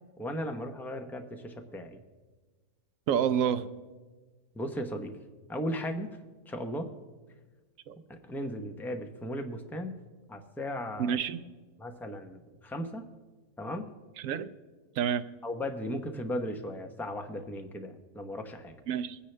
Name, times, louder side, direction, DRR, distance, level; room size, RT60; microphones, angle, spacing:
voice 1, 0.2-2.0 4.5-5.1 5.5-6.1 6.5-6.9 8.1-10.0 10.3-11.2 11.8-13.1 13.6-13.9 15.4-18.7, equal, ahead, 4 dB, 0.5 m, -36 dB
voice 2, 3.1-3.7 7.9-8.0 11.0-11.4 14.2-14.5 15.0-15.2 18.9-19.2, right 8 dB, 65° right, 12 dB, 0.9 m, -28 dB
22.5 x 9.9 x 3.3 m, 1.3 s
omnidirectional pair, 1.6 m